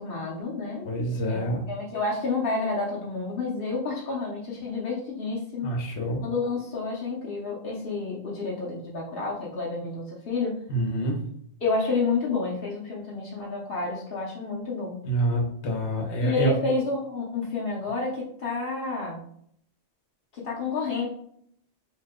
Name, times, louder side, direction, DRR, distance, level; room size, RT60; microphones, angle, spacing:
voice 1, 0.0-0.9 1.3-5.8 6.2-10.6 11.6-15.0 16.2-19.2 20.3-21.1, left 3 dB, 60° left, -4 dB, 0.8 m, -30 dB
voice 2, 0.8-1.6 5.6-6.2 10.7-11.2 15.1-16.5, right 1 dB, 80° left, 0 dB, 1.0 m, -26 dB
2.8 x 2.0 x 3.5 m, 0.66 s
omnidirectional pair, 1.1 m